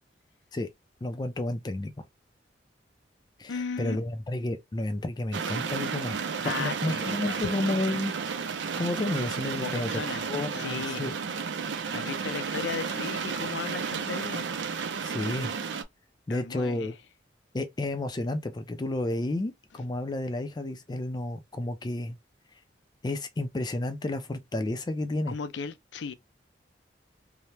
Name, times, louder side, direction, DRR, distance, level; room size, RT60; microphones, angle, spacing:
voice 1, 1.0-1.9 3.4-6.2 6.6-8.1 8.8-10.0 10.3-11.2 15.0-15.5 16.3-16.9 17.5-22.2 23.0-25.4, left 2 dB, 25° left, 0.4 m, -31 dB
voice 2, 3.5-4.0 6.4-7.5 9.5-11.1 11.9-14.5 16.3-16.9 25.3-26.1, left 5 dB, 85° left, 0.4 m, -36 dB
sound 1, 5.3-15.8, right 5 dB, 85° right, 0.5 m, -32 dB
2.8 x 2.0 x 3.2 m
head